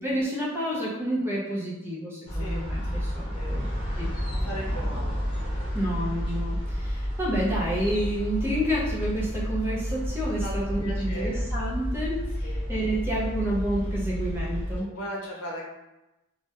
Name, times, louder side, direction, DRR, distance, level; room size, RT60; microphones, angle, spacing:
voice 1, 0.0-3.7 4.0-4.1 5.7-14.9, right 1 dB, 10° right, -6 dB, 0.4 m, -29 dB
voice 2, 2.3-2.6 3.3-3.6 4.2-5.2 10.4-11.4 12.4-12.6 14.8-15.6, equal, 85° left, -3 dB, 0.7 m, -37 dB
sound 1, 2.3-14.8, equal, 20° left, 0.8 m, -30 dB
2.2 x 2.0 x 2.8 m, 0.97 s
head